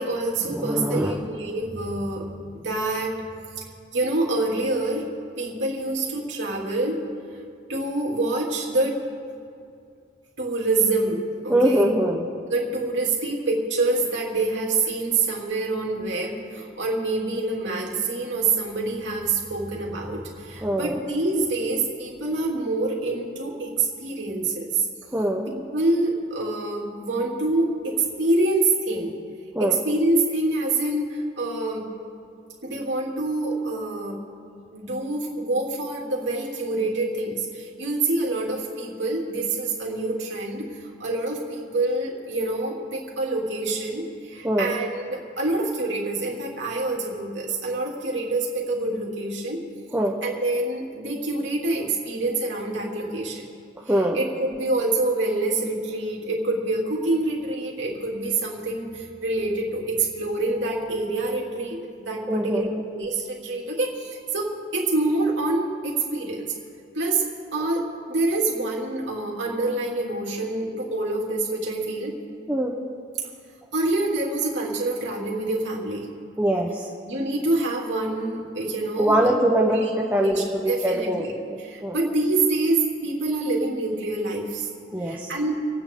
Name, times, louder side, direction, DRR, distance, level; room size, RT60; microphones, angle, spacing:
voice 1, 0.0-3.2 3.9-5.1 5.4-7.0 7.7-9.0 10.4-11.9 12.5-24.9 25.7-29.1 29.6-31.9 32.6-34.2 34.7-40.7 41.0-49.6 50.2-53.5 53.9-66.5 66.9-67.3 67.5-72.2 73.7-76.1 77.0-79.9 80.2-84.7 85.0-85.5, right 2 dB, 90° right, -2 dB, 3.1 m, -26 dB
voice 2, 0.5-1.2 11.5-12.3 20.6-21.0 25.1-25.5 29.5-29.8 44.4-44.7 49.9-50.2 53.9-54.2 62.3-62.8 72.5-72.7 76.4-76.9 79.0-79.8 80.1-82.0 84.9-85.3, right 1 dB, 10° right, -2 dB, 0.9 m, -23 dB
28.5 x 9.8 x 3.8 m, 2.3 s
head